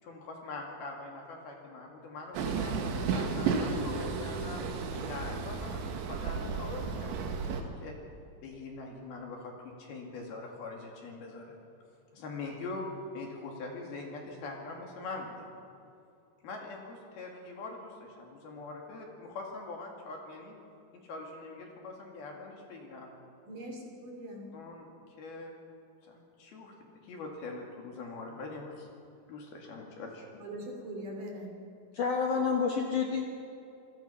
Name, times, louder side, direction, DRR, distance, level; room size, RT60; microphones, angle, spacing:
voice 1, 0.0-2.8 3.1-4.6 5.1-8.0 8.4-11.6 12.1-12.8 13.1-15.5 16.4-20.6 21.0-23.1 24.5-24.9 25.2-25.5 26.0-26.7 27.0-28.9 29.3-30.3, left 3 dB, 55° left, 0 dB, 3.9 m, -43 dB
Train, 2.3-7.6, right 5 dB, 70° right, 3.8 m, -33 dB
voice 2, 23.5-24.5 30.4-31.5, right 1 dB, 45° right, 1 dB, 4.4 m, -41 dB
voice 3, 31.9-33.2, left 5 dB, 75° left, 1 dB, 1.8 m, -28 dB
26.5 x 20.5 x 5.8 m, 2.6 s
omnidirectional pair, 5.8 m